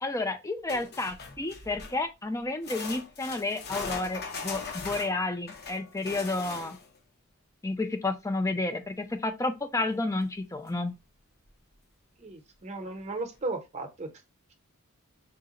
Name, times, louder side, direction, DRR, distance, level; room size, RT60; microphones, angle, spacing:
voice 1, 0.0-6.8 7.6-10.9, left 2 dB, 15° left, 0.5 m, -31 dB
sound 1, 0.7-2.1 2.6-7.0 10.2-10.3 10.7-10.8 11.5-11.6, left 4 dB, 50° left, 0.7 m, -40 dB
voice 2, 12.2-14.1, right 3 dB, 30° right, 0.8 m, -35 dB
3.8 x 2.2 x 3.7 m
head